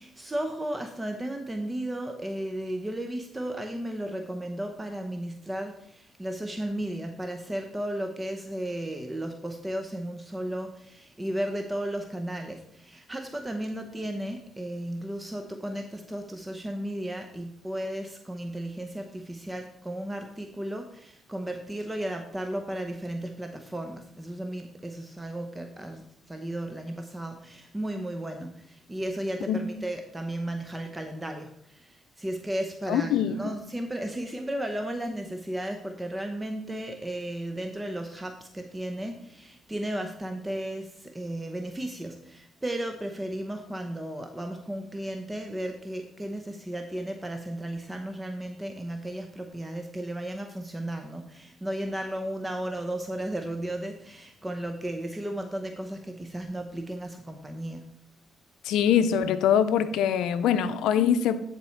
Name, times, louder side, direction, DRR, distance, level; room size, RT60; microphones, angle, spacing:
voice 1, 0.0-57.8, right 1 dB, 15° right, 0.7 m, -34 dB
voice 2, 32.9-33.4 58.6-61.4, left 9 dB, 85° left, 0.5 m, -23 dB
9.8 x 4.3 x 4.5 m
cardioid pair, 90°, 0 cm